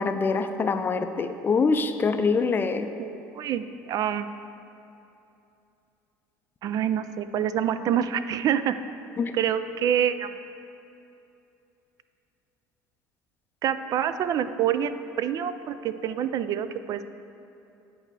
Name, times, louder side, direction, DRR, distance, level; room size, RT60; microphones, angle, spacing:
voice 1, 0.0-2.9 9.2-9.3, left 4 dB, 25° left, 9 dB, 0.4 m, -24 dB
voice 2, 3.0-4.3 6.6-8.7 9.3-10.3 13.6-17.0, right 9 dB, 50° right, 12 dB, 0.3 m, -26 dB
8.8 x 4.3 x 4.7 m, 2.8 s
supercardioid pair, 100°, 8 cm